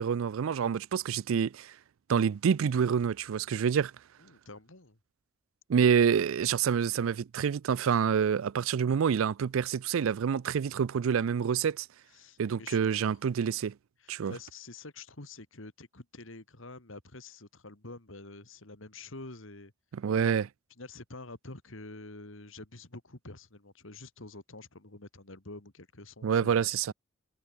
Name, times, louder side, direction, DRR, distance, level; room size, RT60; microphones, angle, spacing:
voice 1, 0.0-1.7 2.1-3.9 5.7-11.9 12.4-13.7 14.1-14.3 19.9-20.5 26.2-26.9, right 7 dB, 85° right, 0.4 m, -27 dB
voice 2, 4.2-5.0 12.1-13.1 14.0-19.7 20.8-26.9, left 2 dB, 75° left, 2.6 m, -47 dB
head